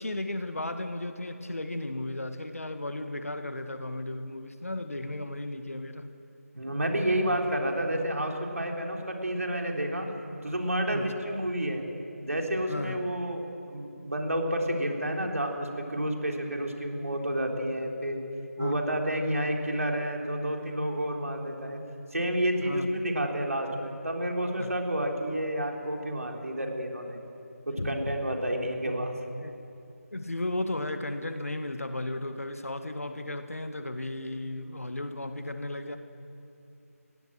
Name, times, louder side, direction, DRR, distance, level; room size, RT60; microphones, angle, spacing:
voice 1, 0.0-6.1 10.9-11.1 12.7-13.0 18.6-18.8 22.6-22.9 24.6-24.7 27.8-28.0 28.8-29.0 29.4-29.5 30.1-36.0, left 1 dB, 65° left, 8 dB, 1.7 m, -34 dB
voice 2, 6.6-10.1 10.4-11.8 12.2-18.2 18.6-21.8 22.1-27.2 27.7-29.1, right 1 dB, 65° right, 1 dB, 3.8 m, -30 dB
20.0 x 17.0 x 7.7 m, 2.6 s
figure-of-eight pair, 165°, 8 cm